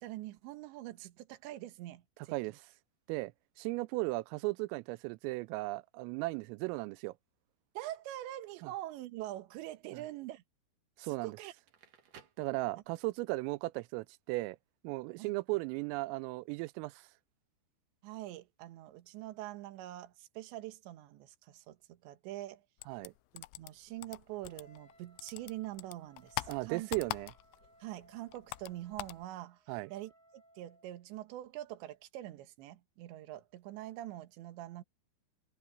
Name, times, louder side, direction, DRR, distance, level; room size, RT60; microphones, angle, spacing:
voice 1, 0.0-2.6 7.8-10.4 11.0-11.5 15.2-15.3 18.0-22.6 23.3-26.9 27.8-29.6 29.9-34.8, right 15 dB, 70° right, 3.5 m, -44 dB
voice 2, 3.6-7.1 8.6-8.7 9.9-10.0 11.0-11.4 12.4-14.6 14.8-17.0 22.9-23.1 26.5-27.3 29.7-29.9, right 22 dB, 90° right, 3.3 m, -36 dB
Crackle, 11.5-13.2, right 7 dB, 50° right, 3.0 m, -59 dB
sound 1, 22.8-24.9 25.2-27.7 28.0-29.2, left 20 dB, 85° left, 2.7 m, -42 dB
Wind instrument woodwind instrument, 24.4-31.1, right 1 dB, 30° left, 2.9 m, -65 dB
omnidirectional pair, 5.8 m